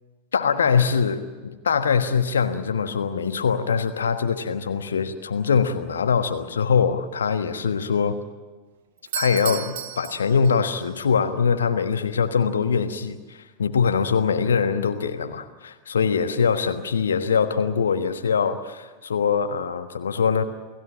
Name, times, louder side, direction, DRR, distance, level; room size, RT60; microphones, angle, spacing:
voice 1, 0.3-8.2 9.1-20.4, left 6 dB, 70° left, 8 dB, 1.4 m, -23 dB
Doorbell, 9.0-10.9, right 10 dB, 55° right, 1.5 m, -33 dB
29.0 x 17.0 x 8.9 m, 1.4 s
figure-of-eight pair, 90°, 0 cm